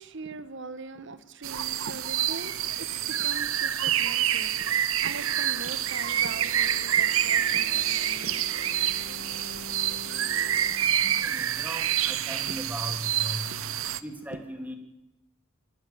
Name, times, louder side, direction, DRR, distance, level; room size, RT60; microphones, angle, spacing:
voice 1, 0.0-8.5 13.5-13.6, right 3 dB, 60° right, 13 dB, 1.2 m, -41 dB
sound 1, 1.4-14.0, right 11 dB, 80° right, 0.8 m, -27 dB
sound 2, 2.2-10.7, left 2 dB, 55° left, 7.2 m, -48 dB
voice 2, 11.0-13.6 14.0-14.8, equal, 10° right, 4 dB, 2.7 m, -38 dB
27.5 x 15.0 x 7.1 m, 0.94 s
head